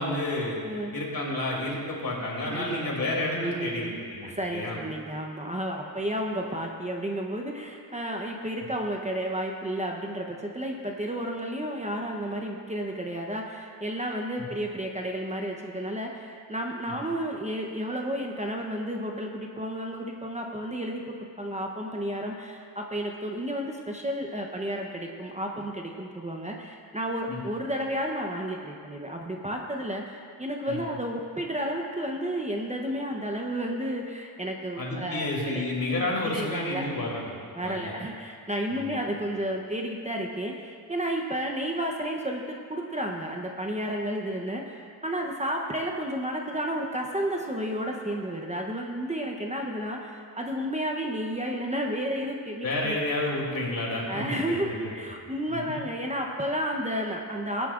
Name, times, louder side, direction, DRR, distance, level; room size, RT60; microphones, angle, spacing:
voice 1, 0.0-0.6 0.9-4.8 14.4-14.5 16.9-17.0 27.3-27.4 30.7-30.8 34.8-37.9 38.7-39.0 52.6-54.7 55.5-55.7, left 2 dB, 55° left, -3 dB, 2.8 m, -30 dB
voice 2, 0.6-1.0 2.5-2.7 3.0-3.9 4.2-35.7 35.9-36.8 37.5-53.0 54.1-57.7, equal, 15° right, 1 dB, 0.8 m, -32 dB
19.5 x 10.0 x 2.5 m, 2.3 s
wide cardioid pair, 110°, 41 cm